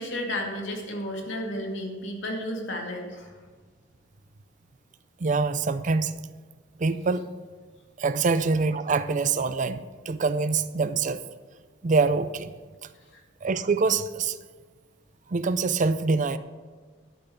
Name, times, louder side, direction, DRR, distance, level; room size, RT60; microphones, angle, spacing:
voice 1, 0.0-3.3, left 1 dB, 90° left, 0 dB, 2.3 m, -32 dB
voice 2, 5.2-6.2 6.8-7.3 8.0-11.2 11.8-12.5 13.4-14.4 15.3-16.4, right 4 dB, 45° right, 13 dB, 0.5 m, -25 dB
12.0 x 6.0 x 6.9 m, 1.5 s
head